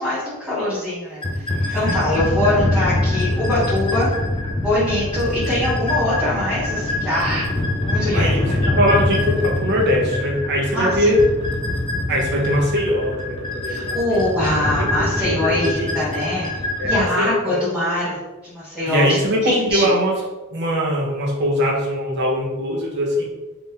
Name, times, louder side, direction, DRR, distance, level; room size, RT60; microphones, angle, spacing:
voice 1, 0.0-4.1 4.6-7.4 7.8-8.4 10.7-11.0 13.7-18.2 18.4-19.9, left 1 dB, 5° right, -13 dB, 1.2 m, -23 dB
sound 1, 1.2-17.1, left 2 dB, 20° left, 0.4 m, -24 dB
voice 2, 1.5-1.9 8.1-11.2 12.1-14.3 15.0-15.9 16.8-16.9 17.2-17.6 18.9-20.1 20.5-23.2, equal, 50° right, -3 dB, 0.8 m, -21 dB
3.4 x 3.1 x 2.8 m, 1.1 s
head